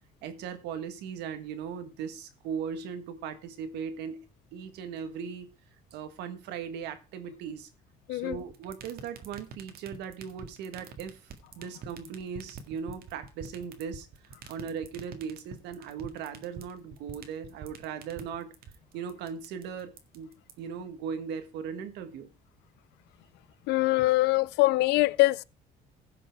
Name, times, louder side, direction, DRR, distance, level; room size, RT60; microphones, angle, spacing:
voice 1, 0.2-4.2 4.5-5.5 5.9-7.7 8.1-14.1 14.5-18.5 18.9-22.3, right 7 dB, 85° right, 1.7 m, -38 dB
voice 2, 8.1-8.4 23.7-25.4, left 19 dB, 90° left, 0.5 m, -23 dB
sound 1, 8.3-20.5, right 6 dB, 65° right, 1.8 m, -44 dB
15.5 x 5.9 x 4.6 m
cardioid pair, 110°, 17 cm